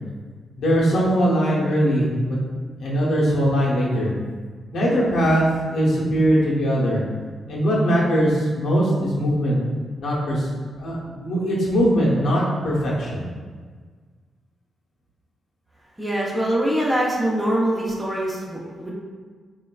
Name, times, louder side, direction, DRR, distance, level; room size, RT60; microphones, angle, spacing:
voice 1, 0.6-2.4 2.8-4.1 4.7-5.4 5.7-7.0 7.5-9.6 10.0-10.5 10.8-13.3, equal, 75° left, -5 dB, 0.7 m, -21 dB
voice 2, 16.0-18.9, right 1 dB, 15° right, -4 dB, 0.7 m, -23 dB
3.2 x 2.2 x 2.3 m, 1.5 s
cardioid pair, 60°, 0 cm